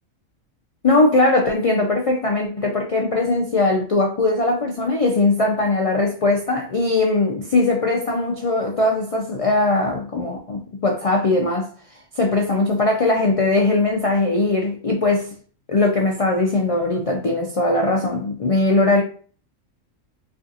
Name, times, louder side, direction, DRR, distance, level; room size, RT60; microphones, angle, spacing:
voice 1, 0.8-11.7 12.2-15.3 15.7-19.0, left 2 dB, 70° left, 0.3 m, -20 dB
4.2 x 2.4 x 2.6 m
omnidirectional pair, 1.4 m